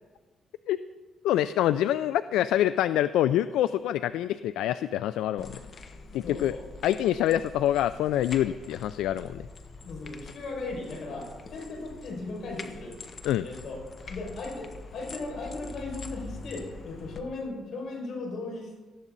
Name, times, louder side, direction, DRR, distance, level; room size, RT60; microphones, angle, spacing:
voice 1, 1.2-5.5 6.1-6.5 6.8-9.4 13.2-13.5, left 12 dB, 90° left, 14 dB, 0.3 m, -26 dB
sound 1, 5.4-17.2, left 3 dB, 50° left, 1.3 m, -44 dB
voice 2, 6.2-6.6 9.8-13.0 13.4-13.8 14.1-18.8, left 3 dB, 65° left, 1 dB, 5.6 m, -37 dB
19.0 x 13.5 x 4.0 m, 1.3 s
cardioid pair, 90°, 0 cm